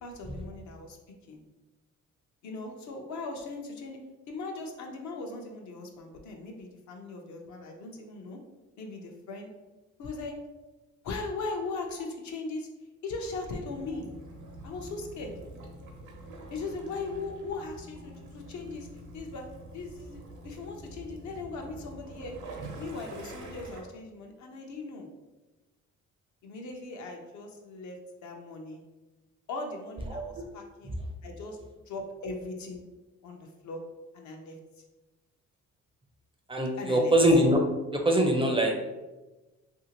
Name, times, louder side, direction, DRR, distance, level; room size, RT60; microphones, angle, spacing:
voice 1, 0.0-1.0 1.3-1.4 2.4-4.0 4.3-8.4 8.8-9.5 10.0-10.4 11.0-12.7 13.0-14.1 14.6-15.3 16.5-18.9 19.1-19.5 19.7-22.4 22.8-25.1 26.4-28.8 29.5-31.0 31.2-31.6 31.9-32.8 33.2-33.8 34.1-34.6 36.8-37.1, left 3 dB, 70° left, 2 dB, 0.6 m, -39 dB
Waves surf / Splash splatter / Trickle dribble, 13.6-23.8, right 2 dB, 75° right, 0.7 m, -46 dB
voice 2, 30.1-30.5 36.5-37.6 37.9-38.8, right 1 dB, 20° right, 2 dB, 0.4 m, -23 dB
2.8 x 2.6 x 2.8 m, 1.1 s
cardioid pair, 90°, 30 cm